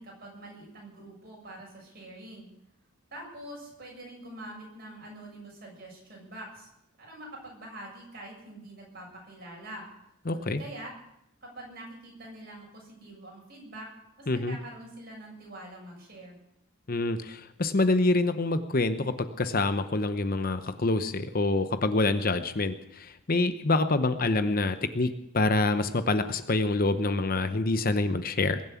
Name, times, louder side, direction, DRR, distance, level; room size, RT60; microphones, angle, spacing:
voice 1, 0.0-2.5 3.1-6.7 7.0-9.9 10.3-10.9 11.4-16.4, right 1 dB, 50° right, -2 dB, 7.3 m, -45 dB
voice 2, 10.3-10.6 14.3-14.6 16.9-28.6, left 2 dB, 45° left, 10 dB, 0.8 m, -26 dB
21.5 x 7.5 x 8.5 m, 0.82 s
head